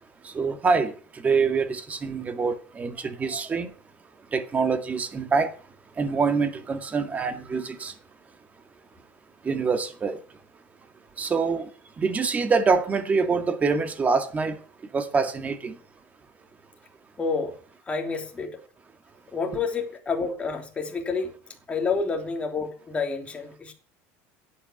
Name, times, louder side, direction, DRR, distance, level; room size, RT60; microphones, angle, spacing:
voice 1, 0.3-0.9 1.2-3.7 4.3-5.5 6.0-7.9 9.4-10.2 11.2-11.7 12.0-14.6 14.9-15.8, right 4 dB, 25° right, 8 dB, 2.0 m, -25 dB
voice 2, 17.2-17.5 17.9-18.6 19.3-21.3 21.7-23.7, left 4 dB, 20° left, 3 dB, 3.2 m, -29 dB
11.0 x 8.7 x 9.7 m, 0.43 s
supercardioid pair, 130°, 6 cm